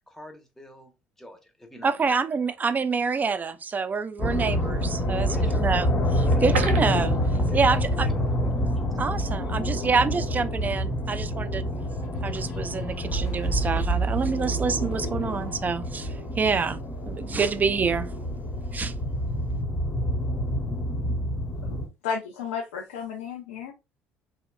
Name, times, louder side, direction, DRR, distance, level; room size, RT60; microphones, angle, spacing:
voice 1, 0.1-0.9 1.2-2.2 5.3-5.6 6.2-6.6 7.5-8.8, left 1 dB, 5° left, 0.7 m, -43 dB
voice 2, 1.8-8.1 9.0-11.7 12.2-16.8 17.1-18.1 18.7-18.9, right 5 dB, 25° right, 0.3 m, -27 dB
sound 1, 4.2-21.9, left 1 dB, 35° left, 1.0 m, -27 dB
sound 2, 6.2-8.0 8.3-8.4 8.8-8.9, right 5 dB, 85° right, 0.5 m, -32 dB
sound 3, 10.2-15.5, right 3 dB, 65° left, 0.9 m, -31 dB
voice 3, 21.7-23.7, left 6 dB, 80° left, 0.5 m, -33 dB
2.8 x 2.1 x 2.2 m
hypercardioid pair, 60°, 6 cm